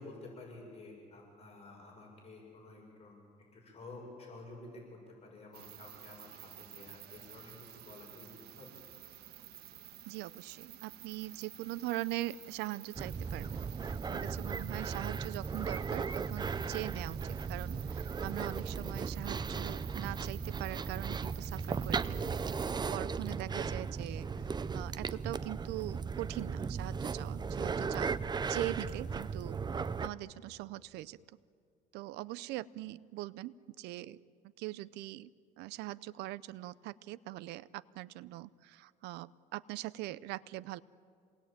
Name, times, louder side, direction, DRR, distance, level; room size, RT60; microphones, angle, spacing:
voice 1, 0.0-3.2 3.5-8.3 8.6-8.7, left 2 dB, 35° left, -1 dB, 6.8 m, -51 dB
sound 1, 5.5-22.7, right 11 dB, 70° right, 1.6 m, -52 dB
voice 2, 10.1-13.6 13.8-24.3 24.7-28.1 28.5-29.6 30.0-31.2 31.9-34.2 34.6-35.3 35.6-40.8, right 16 dB, 90° right, 19 dB, 0.6 m, -42 dB
sound 2, 13.0-30.1, right 5 dB, 25° right, 0.7 m, -36 dB
27.5 x 19.5 x 8.9 m, 2.3 s
cardioid pair, 110°, 17 cm